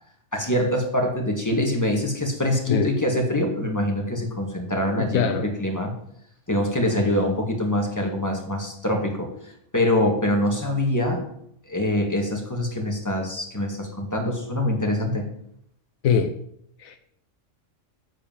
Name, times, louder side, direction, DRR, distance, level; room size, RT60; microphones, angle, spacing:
voice 1, 0.3-5.9 6.5-9.3 9.7-11.2 11.7-15.3, left 1 dB, 15° left, 2 dB, 2.0 m, -24 dB
voice 2, 4.9-5.4 16.0-16.3 16.8-17.0, left 7 dB, 80° left, 6 dB, 1.2 m, -22 dB
8.6 x 7.9 x 7.4 m, 0.71 s
omnidirectional pair, 1.4 m